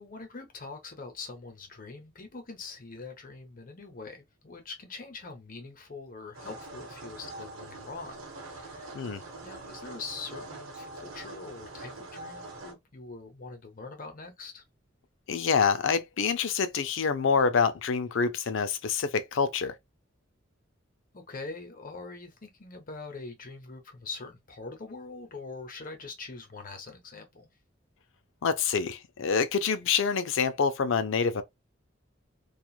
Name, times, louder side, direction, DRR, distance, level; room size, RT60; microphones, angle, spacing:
voice 1, 0.0-9.0 9.4-14.6 21.1-27.5, left 3 dB, 45° left, 0.9 m, -43 dB
sound 1, 6.3-12.7, right 2 dB, 75° right, 0.9 m, -44 dB
voice 2, 15.3-19.8 28.4-31.4, left 5 dB, 65° left, 0.5 m, -26 dB
2.9 x 2.4 x 2.3 m
head